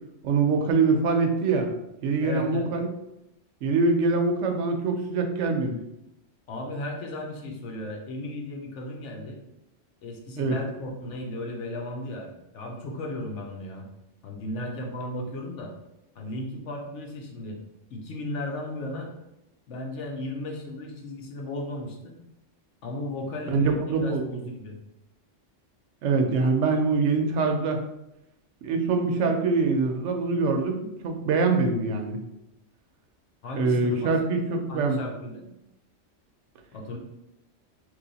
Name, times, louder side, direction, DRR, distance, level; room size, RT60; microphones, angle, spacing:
voice 1, 0.2-1.7 2.0-2.9 3.6-5.8 10.4-10.5 23.5-24.2 26.0-27.8 28.6-32.2 33.5-35.0, right 4 dB, 75° right, 4 dB, 0.9 m, -24 dB
voice 2, 2.2-2.7 6.5-9.4 10.0-13.9 14.2-15.7 16.1-17.6 17.9-19.1 19.7-22.2 22.8-24.8 33.4-35.5 36.7-37.0, left 1 dB, 75° left, 1 dB, 1.1 m, -35 dB
3.2 x 2.8 x 3.9 m, 0.86 s
omnidirectional pair, 1.3 m